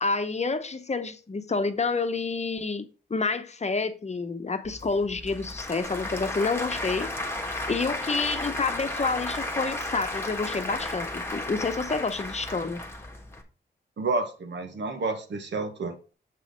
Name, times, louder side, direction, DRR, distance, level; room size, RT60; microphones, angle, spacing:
voice 1, 0.0-7.1 7.7-12.8, left 4 dB, 40° left, 0.9 m, -29 dB
Applause / Crowd, 4.6-13.4, left 1 dB, 15° left, 1.5 m, -34 dB
voice 2, 14.0-16.1, right 3 dB, 80° right, 1.4 m, -30 dB
7.5 x 4.0 x 5.1 m
wide cardioid pair, 85°, 18 cm